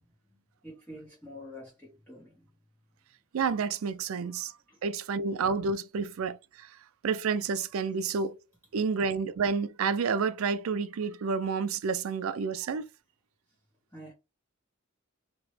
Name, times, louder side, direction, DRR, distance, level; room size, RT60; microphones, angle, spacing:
voice 1, 0.0-2.5 4.7-4.8 8.8-9.0 13.9-14.1, left 1 dB, 10° left, 1.3 m, -48 dB
voice 2, 3.3-4.6 4.8-6.7 7.0-8.4 8.7-12.9, right 5 dB, 85° right, 0.4 m, -30 dB
3.1 x 2.8 x 3.2 m
head